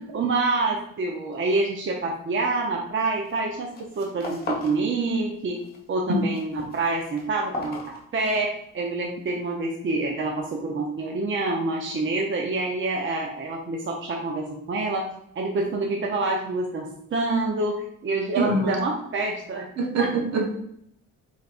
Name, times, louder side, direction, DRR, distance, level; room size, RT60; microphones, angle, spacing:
voice 1, 0.1-3.7 4.0-15.1 15.4-19.7 20.0-20.1, right 3 dB, 40° right, 0 dB, 0.7 m, -27 dB
sound 1, 3.1-3.4 3.7-4.8 5.1-5.8 6.1-8.6, left 2 dB, 30° left, 1.5 m, -36 dB
voice 2, 18.4-18.8 19.8-20.6, right 3 dB, 65° right, 1 dB, 1.1 m, -24 dB
4.5 x 4.1 x 2.5 m, 0.72 s
cardioid pair, 90°, 30 cm